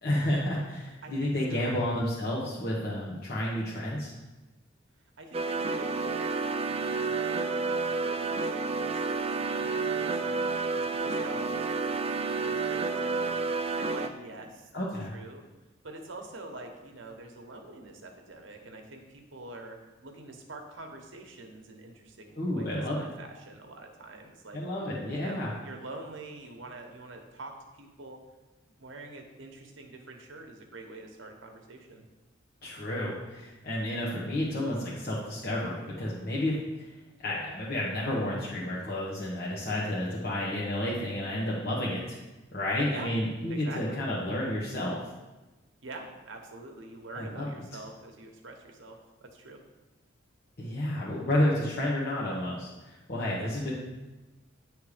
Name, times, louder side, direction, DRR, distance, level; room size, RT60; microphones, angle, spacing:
voice 1, 0.0-4.1 14.7-15.1 22.3-23.1 24.5-25.5 32.6-36.9 37.2-42.2 42.5-45.0 47.1-47.5 50.6-53.7, left 1 dB, 50° left, -6 dB, 1.1 m, -31 dB
voice 2, 1.0-1.8 5.2-13.4 13.8-15.4 15.8-24.6 25.1-28.2 28.8-32.0 42.9-43.1 43.5-44.0 45.8-49.6 53.4-53.5, right 2 dB, 70° right, 3 dB, 1.1 m, -46 dB
sound 1, 5.3-14.1, right 4 dB, 30° right, 0.4 m, -30 dB
9.6 x 3.3 x 4.9 m, 1.1 s
head